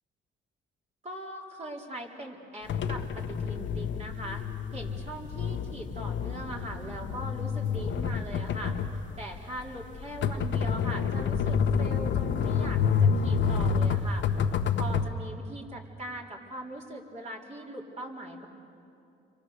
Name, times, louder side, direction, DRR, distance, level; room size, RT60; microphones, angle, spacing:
voice 1, 1.0-4.4 4.7-8.8 9.2-14.2 14.8-18.5, right 1 dB, 35° right, -1 dB, 4.1 m, -41 dB
sound 1, 2.7-15.1, left 6 dB, 70° left, 1.3 m, -28 dB
29.5 x 24.0 x 6.7 m, 2.6 s
cardioid pair, 90°, 20 cm